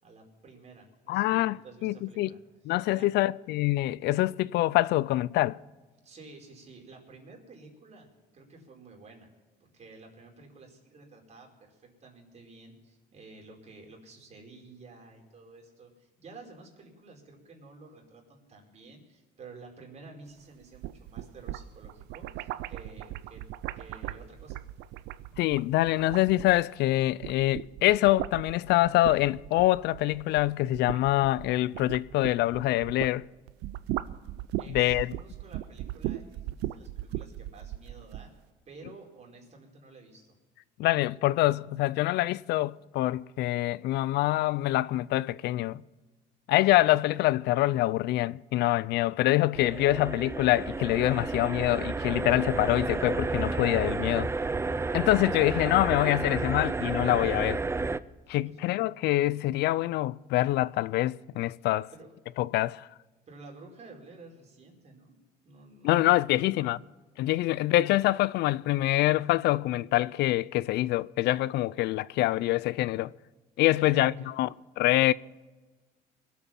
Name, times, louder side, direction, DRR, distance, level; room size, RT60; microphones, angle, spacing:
voice 1, 0.0-2.4 2.9-3.1 6.0-8.1 8.3-9.3 9.6-23.4 23.8-24.6 34.6-38.3 38.6-40.3 58.4-58.6 61.9-62.1 62.5-62.6 63.3-65.2 65.4-66.8 73.7-74.3, right 3 dB, 40° right, 4.9 m, -51 dB
voice 2, 1.1-2.3 2.7-5.6 25.4-33.2 34.7-35.1 40.8-45.8 46.5-54.3 54.9-57.6 58.3-61.9 62.4-62.9 65.8-66.8 67.2-73.1 73.6-74.5 74.8-75.1, left 16 dB, 80° left, 0.4 m, -25 dB
sound 1, 20.6-26.8 27.1-33.2 33.5-38.3, right 15 dB, 85° right, 0.6 m, -38 dB
sound 2, 49.5-58.0, right 3 dB, 15° right, 0.5 m, -31 dB
23.5 x 8.5 x 5.9 m
cardioid pair, 110°, 17 cm